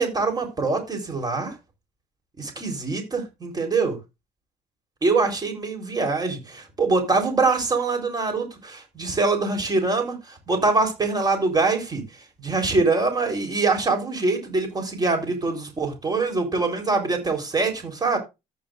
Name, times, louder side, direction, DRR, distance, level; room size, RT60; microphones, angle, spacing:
voice 1, 0.0-1.5 2.4-4.0 5.0-12.0 12.4-18.2, right 3 dB, 25° right, 3.9 m, -24 dB
14.0 x 8.5 x 2.5 m
cardioid pair, 110°, 17 cm